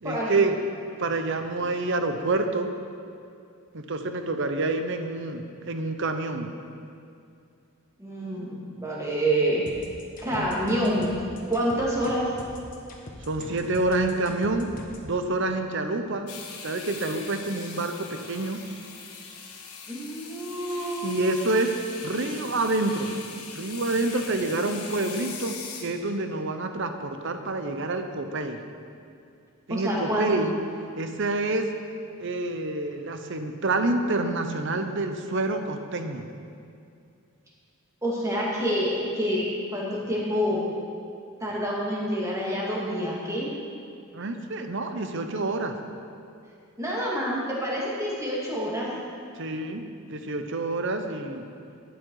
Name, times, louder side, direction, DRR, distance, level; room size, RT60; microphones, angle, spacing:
voice 1, 0.0-0.6 1.0-2.7 3.7-6.5 10.3-10.5 13.3-14.7 15.0-16.3 16.6-18.6 21.0-21.7 22.0-23.2 23.5-28.6 29.7-30.6 31.0-31.7 32.2-36.2 44.1-45.7 49.4-49.8 50.1-51.5, right 2 dB, 55° right, 7 dB, 0.8 m, -27 dB
voice 2, 8.0-9.7 10.2-11.1 11.5-12.3 19.9-21.3 29.7-30.3 38.0-40.7 41.4-43.6 46.8-48.9, equal, 15° right, -5 dB, 2.2 m, -27 dB
sound 1, 9.7-15.1, left 1 dB, 40° left, 1.3 m, -42 dB
sound 2, 16.3-25.8, left 5 dB, 85° left, 1.3 m, -41 dB
12.0 x 9.4 x 4.7 m, 2.5 s
head